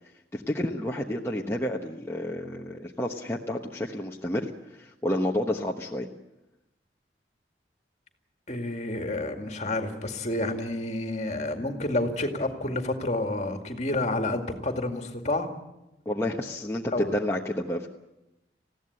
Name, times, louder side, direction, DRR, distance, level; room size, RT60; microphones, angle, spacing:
voice 1, 0.3-6.1 16.0-18.0, left 1 dB, 15° left, -1 dB, 1.1 m, -30 dB
voice 2, 8.5-15.5 16.9-17.2, left 2 dB, 40° left, 5 dB, 2.3 m, -29 dB
20.0 x 16.0 x 9.8 m, 0.94 s
head